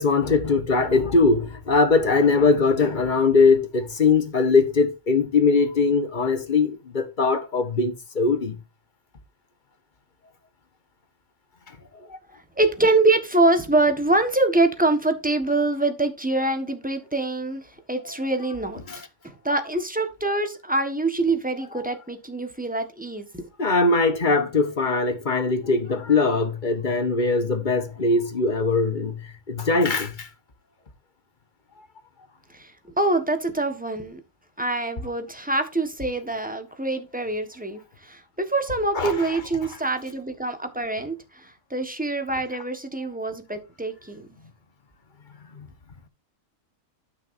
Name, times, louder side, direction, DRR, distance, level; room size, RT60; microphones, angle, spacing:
voice 1, 0.0-8.6 18.9-19.0 23.6-29.2 29.5-30.1 38.9-39.1, left 4 dB, 35° left, 1.3 m, -21 dB
voice 2, 12.6-18.8 19.2-23.5 32.5-34.2 34.6-44.3, right 2 dB, 5° right, 1.2 m, -25 dB
11.5 x 6.4 x 2.6 m
omnidirectional pair, 1.4 m